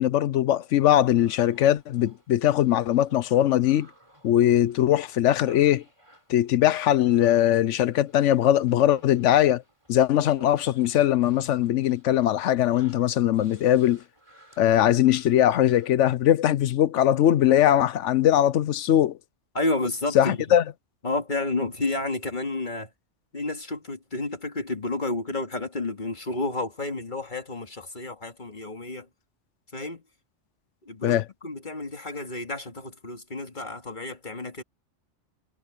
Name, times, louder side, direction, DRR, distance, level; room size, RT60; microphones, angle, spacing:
voice 1, 0.0-3.9 4.2-5.8 6.3-9.6 9.9-14.0 14.6-19.2 20.1-20.6 31.0-31.2, left 11 dB, 90° left, 1.0 m, -21 dB
Human voice, 0.8-16.0, right 1 dB, 25° right, 4.4 m, -55 dB
voice 2, 19.5-20.4 21.0-22.9 23.3-29.1 29.7-30.0 30.9-34.6, left 2 dB, 40° left, 2.4 m, -31 dB
omnidirectional pair, 1.2 m